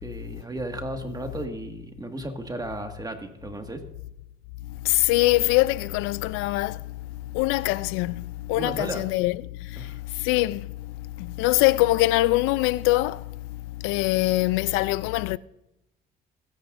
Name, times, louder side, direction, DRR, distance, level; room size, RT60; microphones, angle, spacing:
voice 1, 0.0-3.8 8.6-9.0 9.8-10.0, right 1 dB, 20° right, 1.8 m, -34 dB
voice 2, 4.8-6.8 7.3-9.4 9.7-9.9 10.2-10.7 11.2-13.2 13.8-15.4, left 19 dB, 85° left, 0.5 m, -23 dB
21.5 x 11.0 x 2.6 m
supercardioid pair, 85°, 20 cm